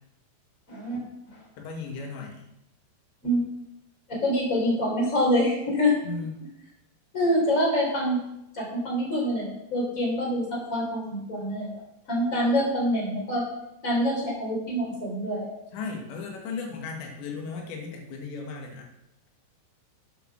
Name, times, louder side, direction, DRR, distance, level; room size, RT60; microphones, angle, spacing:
voice 1, 0.7-1.0 1.3-1.4 3.2-3.5 4.1-6.0 7.1-8.2 8.5-11.7 12.1-13.4 13.8-15.5, equal, 20° left, -3 dB, 3.8 m, -25 dB
voice 2, 1.6-2.5 6.0-6.4 15.7-18.9, left 4 dB, 90° left, 1 dB, 3.9 m, -36 dB
8.3 x 7.6 x 6.2 m, 0.85 s
omnidirectional pair, 5.0 m